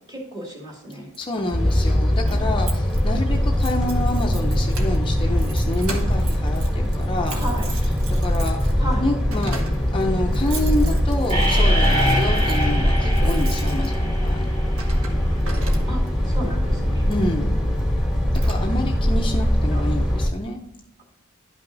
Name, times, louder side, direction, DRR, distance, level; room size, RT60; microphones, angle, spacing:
voice 1, 0.1-1.1 7.3-7.7 8.8-9.0 15.9-17.1 19.7-20.0, equal, 20° right, -2 dB, 2.3 m, -33 dB
Keys jangling, 0.9-16.3 17.0-17.3 17.8-17.9 18.1-19.0, right 2 dB, 80° right, 1.3 m, -38 dB
voice 2, 1.2-7.4 8.1-8.7 9.0-9.6 9.9-14.5 17.1-17.5 18.5-20.6, left 1 dB, 25° left, 1 dB, 0.5 m, -28 dB
sound 1, 1.5-20.3, equal, 5° right, 1.4 m, -22 dB
sound 2, 11.3-15.2, equal, 40° right, 2.3 m, -23 dB
11.5 x 5.7 x 2.6 m, 0.89 s
head